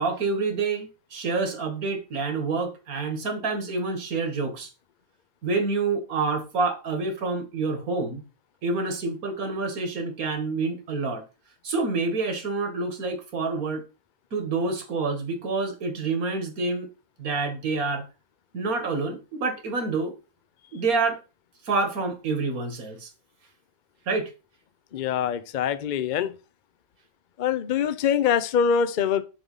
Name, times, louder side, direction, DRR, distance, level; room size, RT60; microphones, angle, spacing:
voice 1, 0.0-4.7 5.4-8.2 8.6-11.2 11.6-13.8 14.3-16.9 17.2-18.0 18.5-20.1 20.7-21.2 21.6-23.1 24.1-24.3, right 3 dB, 80° right, 2.0 m, -27 dB
voice 2, 24.9-26.3 27.4-29.2, left 7 dB, 55° left, 0.5 m, -24 dB
7.1 x 3.6 x 5.5 m
omnidirectional pair, 1.5 m